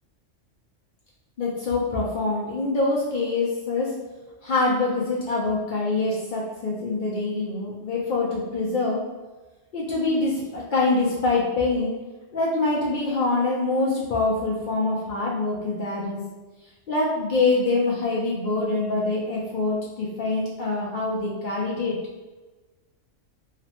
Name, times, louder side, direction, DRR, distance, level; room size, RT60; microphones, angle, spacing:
voice 1, 1.4-3.9 4.4-9.0 9.7-11.9 12.3-16.2 16.9-22.0, left 3 dB, 60° left, -4 dB, 0.5 m, -25 dB
3.0 x 2.0 x 2.8 m, 1.2 s
omnidirectional pair, 1.3 m